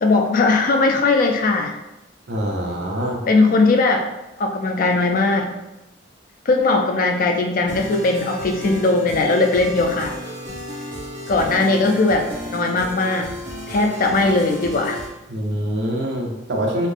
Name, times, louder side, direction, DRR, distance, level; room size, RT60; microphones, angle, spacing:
voice 1, 0.0-1.8 3.3-4.1 4.4-5.5 6.5-10.2 11.3-13.3 13.7-15.0, left 3 dB, 45° left, 4 dB, 0.3 m, -19 dB
voice 2, 2.3-3.3 15.3-16.9, equal, 60° right, 0 dB, 0.6 m, -24 dB
sound 1, 7.7-15.1, equal, 40° right, 1.4 m, -33 dB
3.9 x 2.1 x 3.4 m, 0.95 s
head